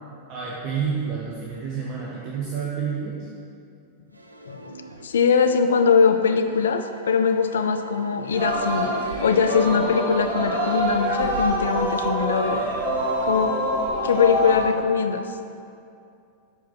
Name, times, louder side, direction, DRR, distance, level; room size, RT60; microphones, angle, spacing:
voice 1, 0.3-3.2, right 6 dB, 40° right, -4 dB, 0.7 m, -29 dB
sound 1, 4.1-5.4 5.7-10.9, right 3 dB, 85° right, 0.3 m, -40 dB
voice 2, 5.0-8.9 9.2-12.6 13.2-13.6 14.0-15.2, left 6 dB, 65° left, 8 dB, 0.3 m, -21 dB
Singing, 8.3-14.7, equal, 70° right, 1.1 m, -25 dB
6.0 x 4.1 x 4.2 m, 2.5 s
figure-of-eight pair, 90°, 0 cm